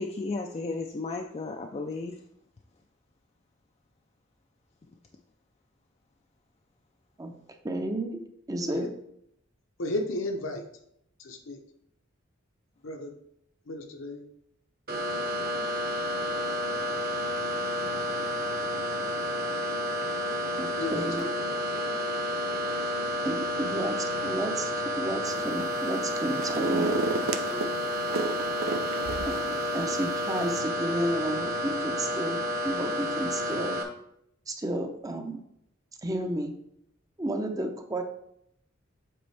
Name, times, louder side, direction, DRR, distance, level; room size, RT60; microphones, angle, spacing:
voice 1, 0.0-2.2, left 3 dB, 30° left, 3 dB, 0.4 m, -34 dB
voice 2, 7.6-8.9 20.6-21.3 23.2-27.1 29.3-33.8 34.5-35.4 36.0-36.6 37.2-38.0, right 1 dB, 20° right, 6 dB, 0.5 m, -32 dB
voice 3, 8.6-8.9 9.8-10.7 11.2-11.6 12.8-13.2 13.6-14.2 20.8-21.6, left 1 dB, 75° left, 4 dB, 0.9 m, -34 dB
sound 1, 14.9-33.8, equal, 50° right, 1.1 m, -30 dB
sound 2, 25.2-25.8 26.1-27.7 28.1-29.5 29.9-30.0, right 3 dB, 80° right, 0.5 m, -31 dB
7.7 x 4.3 x 3.3 m, 0.75 s
head